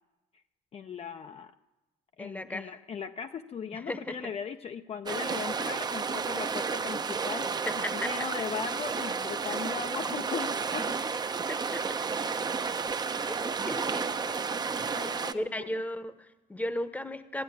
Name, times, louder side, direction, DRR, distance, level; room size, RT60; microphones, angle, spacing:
voice 1, 0.7-1.5 2.2-11.2 14.9-15.8, left 7 dB, 35° left, 8 dB, 0.5 m, -38 dB
voice 2, 2.2-2.7 3.7-4.3 7.7-8.1 11.5-11.8 13.3-14.4 14.8-15.1 15.3-17.4, left 1 dB, 10° left, 12 dB, 0.9 m, -36 dB
sound 1, 5.1-15.3, right 5 dB, 25° right, 0.6 m, -32 dB
13.5 x 10.5 x 9.6 m, 1.1 s
cardioid pair, 110°, 17 cm